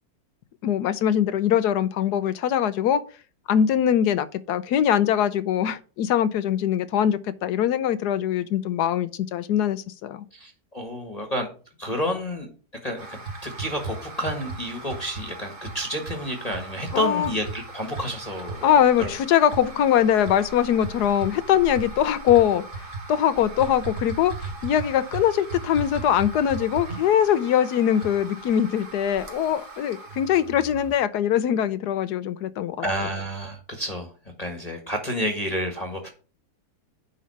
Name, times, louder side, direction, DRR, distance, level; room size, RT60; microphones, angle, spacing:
voice 1, 0.6-3.0 3.5-10.2 16.9-17.3 18.6-22.6 23.1-32.8, left 10 dB, 80° left, 1.2 m, -22 dB
voice 2, 10.3-11.5 11.8-12.5 12.8-18.7 19.0-19.1 32.8-34.1 34.4-36.1, equal, 25° left, 1.5 m, -30 dB
sound 1, 13.0-30.9, right 3 dB, 35° right, 1.6 m, -37 dB
10.0 x 4.0 x 5.4 m
omnidirectional pair, 1.7 m